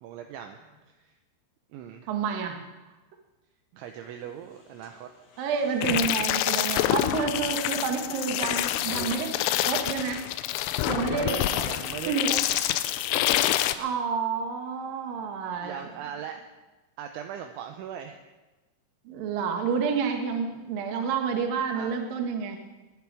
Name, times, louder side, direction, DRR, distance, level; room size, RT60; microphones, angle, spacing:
voice 1, 0.0-0.6 0.9-1.1 1.7-2.0 3.7-5.1 10.8-12.4 15.6-16.4 17.0-18.2 21.8-22.0, right 9 dB, 80° right, 5 dB, 2.9 m, -39 dB
voice 2, 2.1-2.6 5.4-10.3 10.9-11.7 12.0-12.3 13.7-15.8 19.0-22.6, right 6 dB, 60° right, 3 dB, 2.7 m, -29 dB
sound 1, 3.8-6.9 7.2-9.1, left 5 dB, 55° left, 4.4 m, -49 dB
sound 2, 5.8-13.8, left 13 dB, 80° left, 3.0 m, -27 dB
22.0 x 10.5 x 4.9 m, 1.1 s
omnidirectional pair, 6.0 m